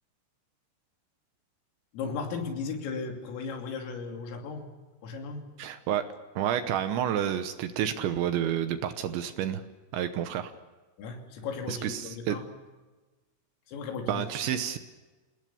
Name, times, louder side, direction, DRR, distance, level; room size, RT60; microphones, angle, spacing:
voice 1, 1.9-4.7 5.0-5.5 11.0-12.4 13.7-14.5, left 5 dB, 80° left, 2 dB, 5.4 m, -36 dB
voice 2, 5.6-6.1 6.4-9.6 9.9-10.5 11.7-12.4 14.1-14.8, right 10 dB, 75° right, 9 dB, 3.0 m, -29 dB
28.5 x 18.5 x 7.0 m, 1.2 s
omnidirectional pair, 5.9 m